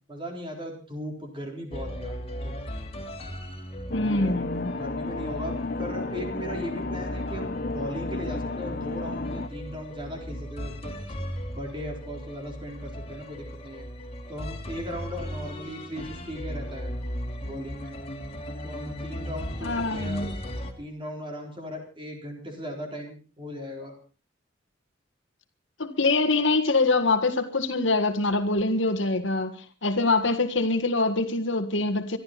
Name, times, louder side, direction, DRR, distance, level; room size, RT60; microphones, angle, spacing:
voice 1, 0.1-2.5 4.0-4.4 4.7-10.9 11.5-13.8 14.3-16.9 17.4-18.0 18.6-20.3 20.8-23.9, equal, 25° right, 4.1 m, -37 dB
sound 1, 1.7-20.7, equal, 30° left, 2.5 m, -37 dB
voice 2, 3.9-4.7 19.6-20.3 25.8-32.2, left 3 dB, 65° left, 1.7 m, -24 dB
sound 2, 3.9-9.5, left 3 dB, 50° left, 1.1 m, -33 dB
24.5 x 12.0 x 4.1 m
head